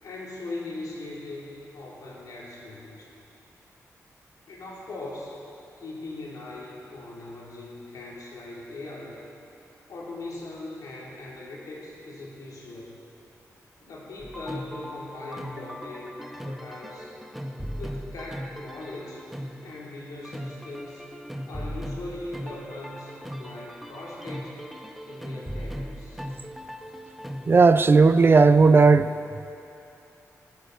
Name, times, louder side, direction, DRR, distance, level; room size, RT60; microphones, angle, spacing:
voice 1, 0.0-3.1 4.5-5.3 5.8-9.2 9.9-13.0 13.8-17.1 17.7-19.2 19.6-21.0 21.5-24.6 25.1-26.2, left 2 dB, 80° left, 3.2 m, -40 dB
sound 1, 14.2-28.2, equal, 5° right, 0.7 m, -38 dB
voice 2, 27.5-29.1, right 4 dB, 40° right, 0.4 m, -15 dB
19.5 x 8.3 x 4.7 m
cardioid pair, 75°, 6 cm